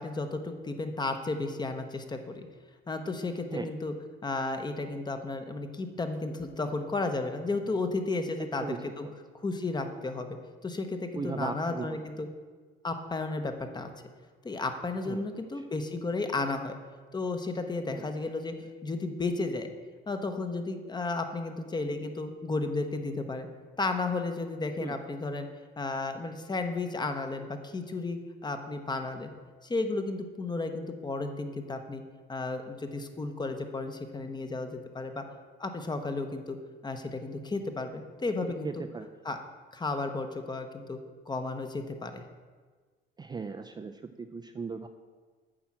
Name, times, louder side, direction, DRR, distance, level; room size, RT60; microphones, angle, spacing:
voice 1, 0.0-2.5 2.9-3.9 4.2-9.1 9.3-10.4 10.6-12.3 12.8-13.9 14.4-16.8 17.1-19.7 20.1-23.5 23.8-25.5 25.8-29.3 29.6-32.0 32.3-35.2 35.6-36.6 36.8-38.7 39.2-39.4 39.7-41.0 41.3-42.2, left 3 dB, 20° left, 7 dB, 0.9 m, -33 dB
voice 2, 11.1-11.9 15.1-15.7 17.9-18.0 24.8-25.0 38.6-39.1 43.2-44.9, right 4 dB, 20° right, 6 dB, 0.4 m, -37 dB
8.7 x 4.7 x 7.3 m, 1.4 s
cardioid pair, 115°, 21 cm